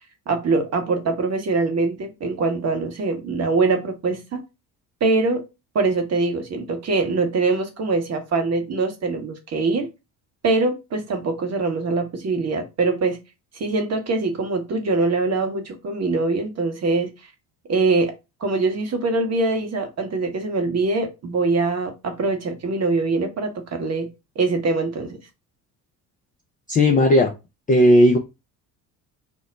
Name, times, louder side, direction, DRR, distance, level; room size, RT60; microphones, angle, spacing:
voice 1, 0.3-4.4 5.0-5.4 5.7-9.9 10.4-13.2 13.5-17.1 17.7-18.1 18.4-24.1 24.4-25.2, right 3 dB, 30° right, 0.8 m, -23 dB
voice 2, 26.7-27.3 27.7-28.2, left 1 dB, 20° left, 0.3 m, -15 dB
2.2 x 2.0 x 3.8 m
hypercardioid pair, 55°, 49 cm